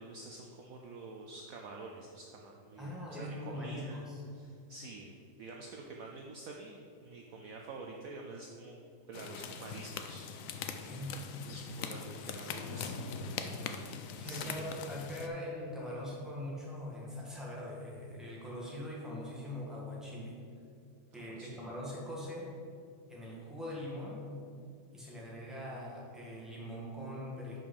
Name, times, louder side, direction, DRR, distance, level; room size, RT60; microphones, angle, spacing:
voice 1, 0.0-4.0 4.3-8.8 9.1-10.8 11.5-13.0 14.2-14.6 21.1-21.7, right 3 dB, 65° right, 0 dB, 1.0 m, -48 dB
voice 2, 2.8-4.2 10.8-11.1 14.2-20.3 21.1-22.5 23.1-24.2 24.9-27.6, left 1 dB, ahead, -5 dB, 1.6 m, -42 dB
sound 1, 9.1-15.3, left 6 dB, 65° left, 0.8 m, -41 dB
6.0 x 5.3 x 6.5 m, 2.4 s
omnidirectional pair, 1.8 m